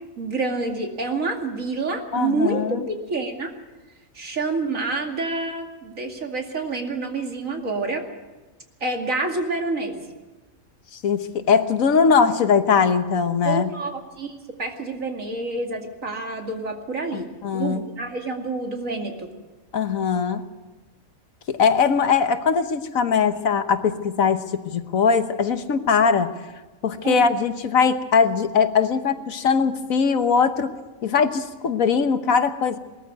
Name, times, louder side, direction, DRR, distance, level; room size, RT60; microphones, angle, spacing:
voice 1, 0.2-3.5 4.1-8.0 8.8-10.1 13.4-19.3 27.0-27.2, right 3 dB, 70° right, 3 dB, 2.8 m, -28 dB
voice 2, 2.1-2.8 11.0-13.7 17.1-17.8 19.7-20.4 21.5-26.3 26.8-30.7 31.0-32.8, left 6 dB, 75° left, 10 dB, 1.5 m, -21 dB
20.0 x 14.0 x 9.4 m, 1.2 s
omnidirectional pair, 1.5 m